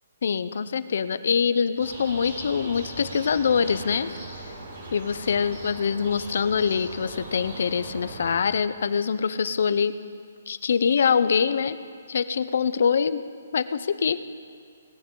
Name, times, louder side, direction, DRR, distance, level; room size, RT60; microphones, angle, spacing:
voice 1, 0.2-4.1 4.9-9.9 10.5-11.8 12.1-13.2 13.5-14.2, left 6 dB, 55° left, 14 dB, 0.5 m, -24 dB
sound 1, 1.8-8.3, right 2 dB, 45° right, 4.1 m, -39 dB
19.0 x 14.0 x 3.8 m, 2.1 s
hypercardioid pair, 175°, 0 cm